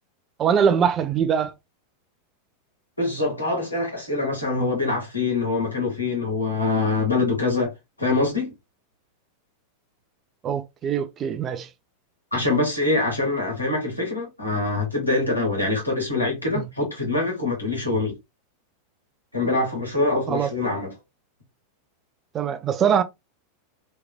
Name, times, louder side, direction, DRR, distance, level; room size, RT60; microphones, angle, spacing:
voice 1, 0.4-1.5 10.4-11.7 16.5-16.6 20.3-20.5 22.3-23.0, right 7 dB, 30° right, 0.5 m, -22 dB
voice 2, 3.0-7.7 8.0-8.5 12.3-18.2 19.3-20.9, left 3 dB, 90° left, 1.9 m, -24 dB
3.4 x 3.1 x 2.2 m
figure-of-eight pair, 90°, 0 cm